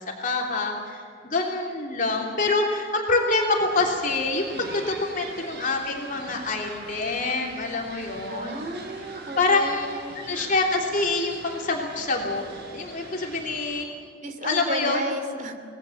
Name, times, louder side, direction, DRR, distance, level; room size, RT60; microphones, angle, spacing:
voice 1, 0.2-8.5 9.4-9.9 10.1-13.9 14.4-15.1, left 3 dB, 45° left, 0 dB, 3.3 m, -26 dB
sound 1, 3.6-13.8, right 2 dB, 60° right, 4.8 m, -44 dB
voice 2, 8.3-10.1 14.2-15.5, right 1 dB, 45° right, 6 dB, 2.9 m, -33 dB
26.0 x 20.0 x 7.4 m, 2.4 s
head